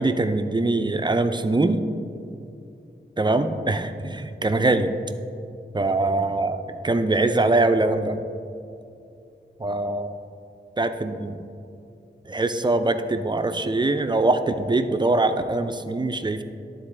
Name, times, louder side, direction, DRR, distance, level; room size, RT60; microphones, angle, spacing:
voice 1, 0.0-1.8 3.2-4.9 5.7-8.2 9.6-10.2 10.8-11.5 12.2-16.4, right 2 dB, 25° right, 8 dB, 0.3 m, -23 dB
11.5 x 4.0 x 3.3 m, 2.5 s
wide cardioid pair, 75°, 20 cm